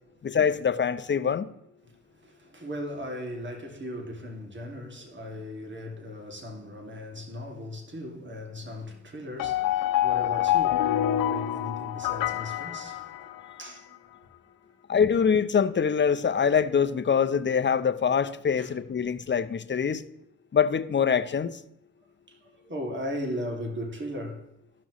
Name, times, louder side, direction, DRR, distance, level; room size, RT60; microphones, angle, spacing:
voice 1, 0.2-1.5 14.9-20.0 20.5-21.6, left 7 dB, 35° left, 0.7 m, -24 dB
voice 2, 2.2-13.3 13.6-14.0 18.6-18.7 22.3-24.5, left 1 dB, 35° right, 2.4 m, -37 dB
sound 1, 9.4-13.7, left 12 dB, 85° left, 0.7 m, -27 dB
15.0 x 6.0 x 3.1 m
cardioid pair, 70°, 33 cm